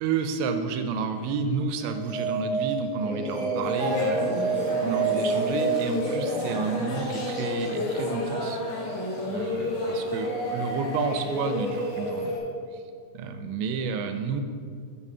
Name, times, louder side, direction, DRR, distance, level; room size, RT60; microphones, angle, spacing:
voice 1, 0.0-8.9 9.2-12.3 13.2-14.4, right 5 dB, 85° right, 7 dB, 2.7 m, -31 dB
sound 1, 1.8-6.6, right 5 dB, 55° right, 1.3 m, -29 dB
Singing, 3.0-12.4, left 1 dB, 60° left, 1.1 m, -31 dB
sound 2, 3.6-12.4, left 2 dB, 80° left, 4.8 m, -37 dB
9.7 x 4.1 x 5.4 m, 2.2 s
omnidirectional pair, 5.6 m